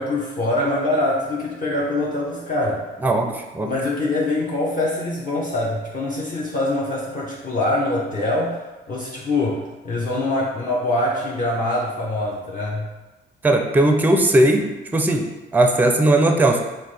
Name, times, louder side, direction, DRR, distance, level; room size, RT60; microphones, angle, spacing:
voice 1, 0.0-2.9 3.2-3.3 3.6-12.9, left 2 dB, 40° left, -5 dB, 0.7 m, -24 dB
voice 2, 3.0-3.7 13.4-16.6, right 1 dB, 10° right, 4 dB, 0.4 m, -18 dB
5.5 x 2.1 x 3.2 m, 1.1 s
cardioid pair, 90°, 20 cm